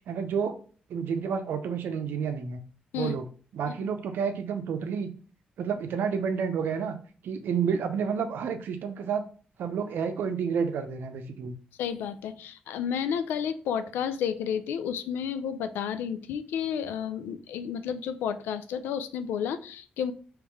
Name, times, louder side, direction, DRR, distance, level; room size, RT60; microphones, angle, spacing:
voice 1, 0.1-0.5 0.9-2.6 2.9-3.2 3.5-5.1 5.6-6.9 7.2-9.2 9.6-11.6, right 6 dB, 75° right, 0.6 m, -30 dB
voice 2, 11.8-20.1, left 8 dB, 85° left, 0.4 m, -31 dB
3.5 x 3.2 x 4.6 m
supercardioid pair, 50°, 3 cm